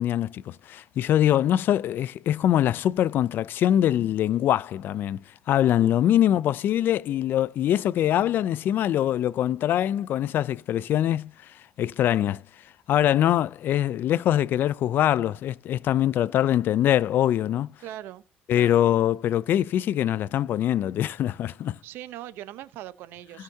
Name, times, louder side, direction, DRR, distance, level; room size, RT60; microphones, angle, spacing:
voice 1, 0.0-5.2 5.5-12.4 12.9-17.7 18.5-21.8, left 11 dB, 65° left, 0.5 m, -23 dB
voice 2, 17.8-18.2 18.5-18.8 21.8-23.4, right 13 dB, 85° right, 0.8 m, -40 dB
16.0 x 5.8 x 2.8 m
cardioid pair, 90°, 4 cm